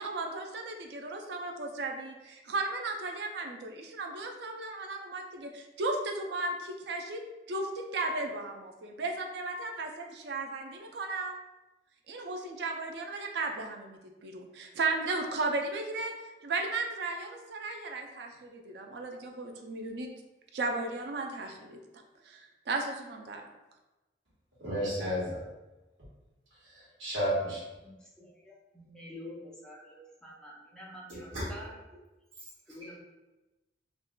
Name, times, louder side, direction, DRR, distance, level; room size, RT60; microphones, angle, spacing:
voice 1, 0.0-11.4 12.1-16.1 16.4-20.1 20.5-21.8 22.2-23.4, right 3 dB, 65° right, 3 dB, 0.4 m, -35 dB
voice 2, 24.6-25.4 26.7-27.6 31.3-31.4, equal, 90° right, -8 dB, 1.2 m, -32 dB
voice 3, 27.8-31.8 32.7-33.0, left 1 dB, 5° left, -6 dB, 0.5 m, -48 dB
3.6 x 2.3 x 2.2 m, 1.0 s
head